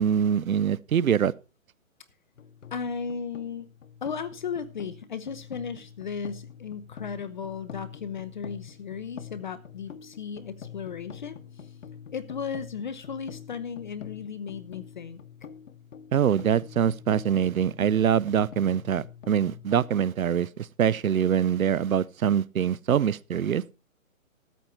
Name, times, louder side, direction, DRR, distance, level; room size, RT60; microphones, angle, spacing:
voice 1, 0.0-1.3 16.1-23.6, right 8 dB, 80° right, 0.7 m, -24 dB
sound 1, 2.4-20.0, left 8 dB, 65° left, 1.3 m, -45 dB
voice 2, 2.7-3.7 4.0-11.7 12.1-15.2, left 6 dB, 35° left, 0.7 m, -35 dB
13.5 x 8.2 x 4.4 m
hypercardioid pair, 155°, 41 cm